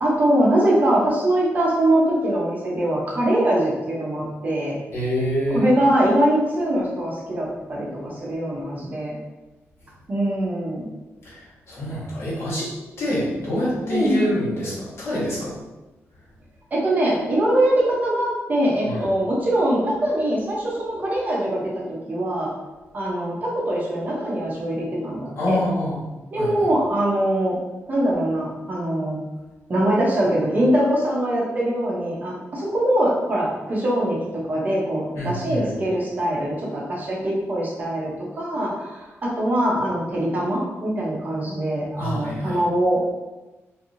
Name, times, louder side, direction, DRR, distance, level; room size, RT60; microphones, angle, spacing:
voice 1, 0.0-4.8 5.5-9.2 10.1-10.9 13.9-14.3 16.7-22.5 22.9-25.6 26.3-27.6 27.9-29.2 29.7-34.2 34.5-43.0, right 1 dB, 35° right, -4 dB, 0.7 m, -22 dB
voice 2, 4.9-5.6 11.3-11.4 11.7-12.7 13.0-15.5 18.8-19.0 25.4-26.0 26.4-26.7 35.1-35.7 42.0-42.6, left 1 dB, 60° left, -8 dB, 1.3 m, -26 dB
3.2 x 2.6 x 2.6 m, 1.1 s
wide cardioid pair, 155°, 5 cm